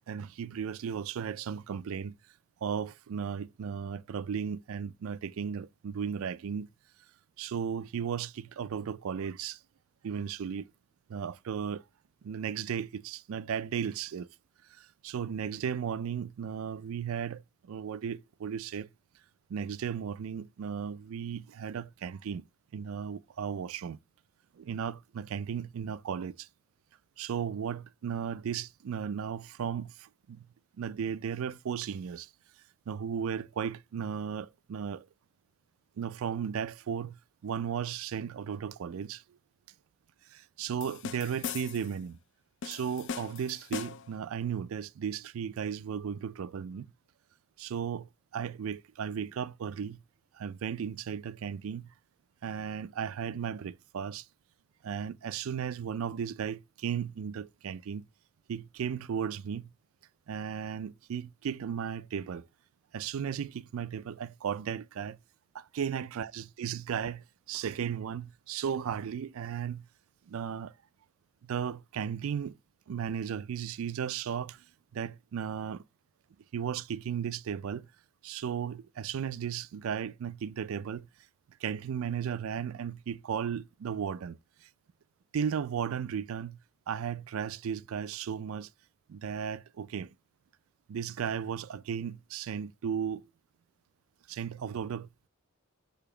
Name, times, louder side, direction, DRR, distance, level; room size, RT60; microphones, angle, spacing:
voice 1, 0.1-2.1 2.6-6.7 7.4-9.6 10.0-10.7 11.1-11.8 12.2-14.3 14.7-18.9 19.5-22.4 22.7-24.0 24.5-26.5 27.2-30.5 30.8-32.3 32.9-35.1 36.0-37.2 37.4-39.2 40.3-42.2 42.6-46.9 47.6-50.0 50.3-51.9 52.4-54.3 54.8-58.0 58.5-59.7 60.3-62.5 62.9-65.2 65.5-69.8 70.3-70.7 71.4-72.6 72.9-74.6 74.9-75.8 76.5-77.9 78.2-81.1 81.6-84.7 85.3-86.6 86.9-88.7 89.1-90.1 90.9-93.2 94.3-95.1, right 7 dB, 70° right, 0.4 m, -35 dB
sound 1, 40.8-42.0 42.6-44.2, left 6 dB, 55° left, 0.4 m, -40 dB
6.8 x 2.9 x 4.8 m
head